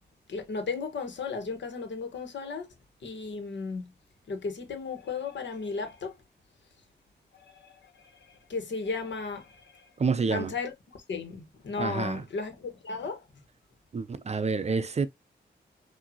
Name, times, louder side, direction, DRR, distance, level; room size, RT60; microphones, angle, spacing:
voice 1, 0.3-2.7 3.0-3.9 4.3-6.2 7.3-9.9 10.3-10.7 11.1-13.2, left 4 dB, 80° left, 1.4 m, -35 dB
voice 2, 10.0-10.5 11.8-12.2 13.9-15.1, right 4 dB, 35° right, 0.5 m, -28 dB
6.2 x 2.7 x 2.9 m
wide cardioid pair, 130°, 19 cm